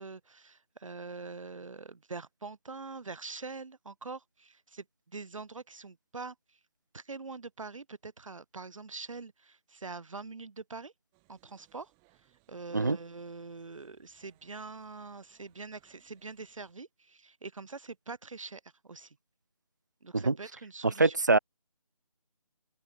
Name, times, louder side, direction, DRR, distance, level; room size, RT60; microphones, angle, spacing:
voice 1, 0.0-6.4 6.9-10.9 11.3-11.9 12.5-19.2 20.0-21.1, right 4 dB, 60° right, 1.7 m, -44 dB
sound 1, 11.1-16.7, right 39 dB, 10° right, 7.2 m, -70 dB
voice 2, 20.8-21.4, right 3 dB, 30° right, 0.4 m, -24 dB
open air
figure-of-eight pair, 160°, 19 cm